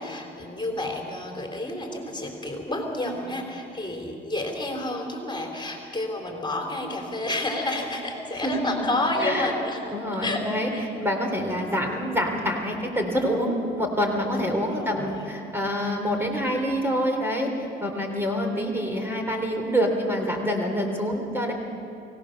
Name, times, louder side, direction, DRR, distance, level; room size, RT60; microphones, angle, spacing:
voice 1, 0.0-9.9 10.2-10.9 14.3-15.2, left 2 dB, 25° left, 2 dB, 3.6 m, -30 dB
voice 2, 8.4-8.9 9.2-9.5 9.9-10.7 11.0-21.5, equal, 10° right, 2 dB, 3.5 m, -26 dB
24.0 x 17.5 x 6.6 m, 2.5 s
cardioid pair, 90°, 20 cm